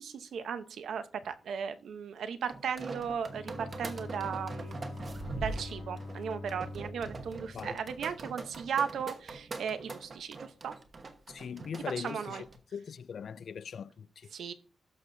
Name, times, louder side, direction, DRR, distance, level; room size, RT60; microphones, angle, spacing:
voice 1, 0.0-4.7 5.4-10.7 12.0-12.4 14.3-14.5, right 7 dB, 90° right, 0.8 m, -36 dB
sound 1, 2.5-12.6, right 3 dB, 40° right, 1.1 m, -42 dB
Bowed string instrument, 3.2-8.4, left 3 dB, 80° left, 2.0 m, -45 dB
voice 2, 11.3-14.3, left 7 dB, 60° left, 0.3 m, -41 dB
12.5 x 6.4 x 2.6 m
wide cardioid pair, 145°, 0 cm